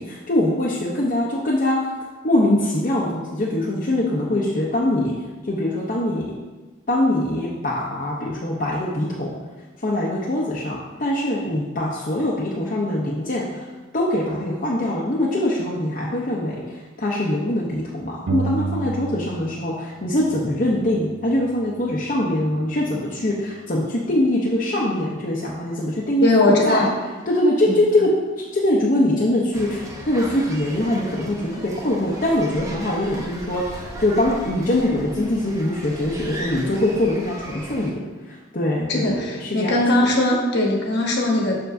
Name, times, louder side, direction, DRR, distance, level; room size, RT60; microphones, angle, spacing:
voice 1, 0.0-1.8 2.2-5.1 5.5-6.4 6.9-9.3 9.8-13.7 13.9-26.8 27.3-28.1 28.5-33.6 34.0-38.0 38.3-39.7 40.0-40.1, left 1 dB, 45° left, -5 dB, 0.7 m, -23 dB
sound 1, 18.3-19.8 20.0-21.8, right 4 dB, 90° right, 0.5 m, -31 dB
voice 2, 26.2-27.0 27.6-27.8 38.9-41.6, left 1 dB, 60° left, 0 dB, 1.1 m, -20 dB
sound 2, 29.5-37.9, right 1 dB, 15° right, 0.7 m, -36 dB
6.9 x 6.0 x 2.6 m, 1.3 s
head